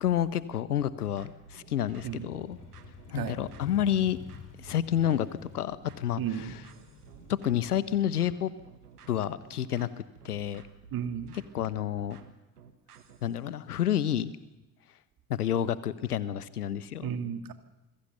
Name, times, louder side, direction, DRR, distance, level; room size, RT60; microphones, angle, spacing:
voice 1, 0.0-2.6 3.1-4.2 4.6-5.3 5.5-6.6 7.3-8.5 9.1-9.9 10.2-10.6 11.5-12.2 13.2-14.3 15.3-17.1, left 10 dB, 85° left, 17 dB, 1.1 m, -29 dB
sound 1, 0.8-13.4, right 7 dB, 85° right, 1.7 m, -54 dB
Motorcycle, 1.9-9.5, left 8 dB, 40° left, 4.0 m, -50 dB
voice 2, 6.2-6.5 10.9-11.4 17.0-17.5, right 8 dB, 50° right, 9 dB, 2.4 m, -33 dB
26.5 x 22.0 x 6.8 m, 1.0 s
figure-of-eight pair, 55°, 45 cm